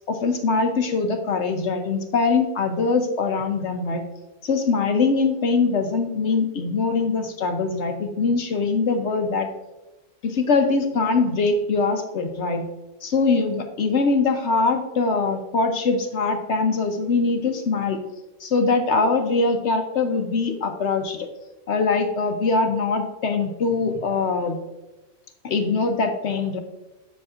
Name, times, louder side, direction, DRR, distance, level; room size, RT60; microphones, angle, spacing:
voice 1, 0.1-4.0 4.4-9.5 10.2-12.7 13.0-18.0 18.4-21.3 21.7-24.6 25.4-26.6, left 4 dB, 65° left, 6 dB, 0.9 m, -22 dB
8.0 x 7.5 x 2.4 m, 1.1 s
omnidirectional pair, 1.4 m